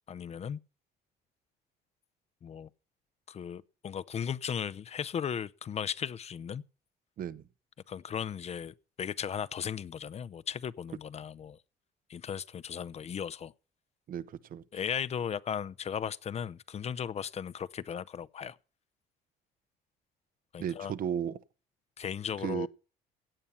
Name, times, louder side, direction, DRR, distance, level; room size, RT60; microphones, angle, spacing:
voice 1, 0.1-0.6 2.4-2.7 3.3-6.6 7.9-11.6 12.1-13.5 14.7-18.6 20.5-20.9 22.0-22.7, left 8 dB, 40° left, 0.7 m, -36 dB
voice 2, 14.1-14.6 20.6-21.4 22.4-22.7, right 9 dB, 55° right, 0.9 m, -34 dB
16.5 x 8.4 x 5.7 m
cardioid pair, 110°, 17 cm